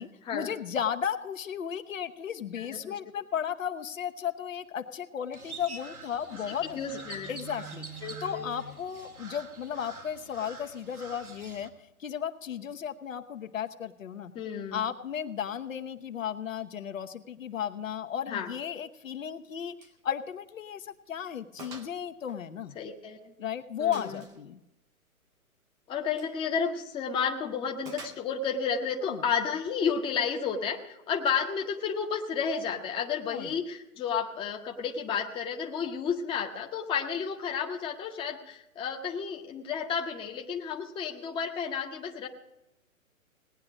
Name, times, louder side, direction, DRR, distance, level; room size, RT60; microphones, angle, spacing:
voice 1, 0.0-6.8 7.3-7.9 8.2-11.7 12.0-14.3 14.7-19.7 20.0-22.7 23.4-24.6 29.0-29.2 33.3-33.5, left 8 dB, 65° left, 7 dB, 1.1 m, -34 dB
voice 2, 2.4-3.0 6.5-7.4 8.0-8.5 14.3-14.8 18.3-18.5 22.7-23.3 23.8-24.2 25.9-42.3, left 6 dB, 10° left, 2 dB, 0.9 m, -32 dB
Crow, 5.3-11.7, right 4 dB, 85° right, 2.0 m, -45 dB
Gunshot gunfire, 19.8-20.0 20.3-20.5 20.9-21.0 21.6-22.0 22.3-23.2 23.9-24.4 26.1-26.4 27.8-28.6, right 3 dB, 10° right, 0.5 m, -48 dB
18.5 x 9.7 x 5.0 m, 0.90 s
figure-of-eight pair, 125°, 43 cm